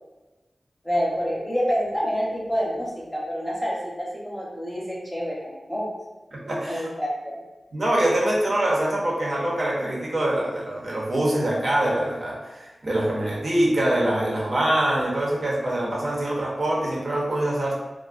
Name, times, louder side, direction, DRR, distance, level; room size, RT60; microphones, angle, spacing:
voice 1, 0.8-5.9 6.6-7.4, equal, 5° left, -6 dB, 0.7 m, -27 dB
voice 2, 6.3-6.9 7.7-17.7, right 1 dB, 65° right, -3 dB, 0.7 m, -24 dB
2.4 x 2.1 x 2.4 m, 1.1 s
cardioid pair, 40°, 0 cm